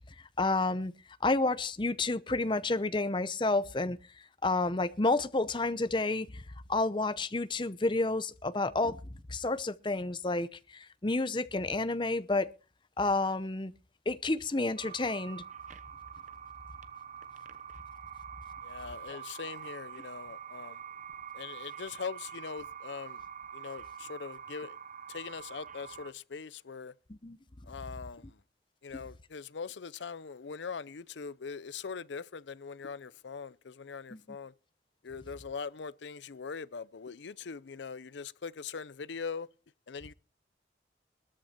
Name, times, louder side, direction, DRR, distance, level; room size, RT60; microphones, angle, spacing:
voice 1, 0.4-0.9 1.2-4.0 4.4-6.4 6.7-9.0 9.3-12.5 13.0-13.7 14.1-15.4 19.1-19.2 27.1-27.4 34.1-34.2, left 2 dB, 25° left, 0.7 m, -30 dB
sound 1, 14.8-26.1, right 8 dB, 40° right, 0.9 m, -45 dB
voice 2, 18.6-20.8 21.3-23.2 23.5-24.7 25.1-26.9 27.7-28.2 28.8-34.5 35.0-39.5 39.9-40.1, left 5 dB, 75° left, 0.6 m, -41 dB
20.5 x 8.9 x 4.4 m
head